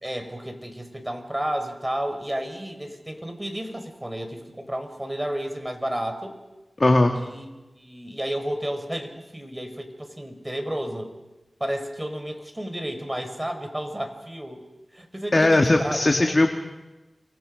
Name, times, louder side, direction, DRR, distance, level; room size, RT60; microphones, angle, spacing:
voice 1, 0.0-6.4 7.1-7.5 7.7-11.1 11.6-14.6 14.9-16.4, right 1 dB, 20° right, 6 dB, 4.7 m, -32 dB
voice 2, 6.8-7.1 15.3-16.5, left 2 dB, 45° left, 3 dB, 2.0 m, -18 dB
28.5 x 23.5 x 5.3 m, 1.1 s
cardioid pair, 40°, 0 cm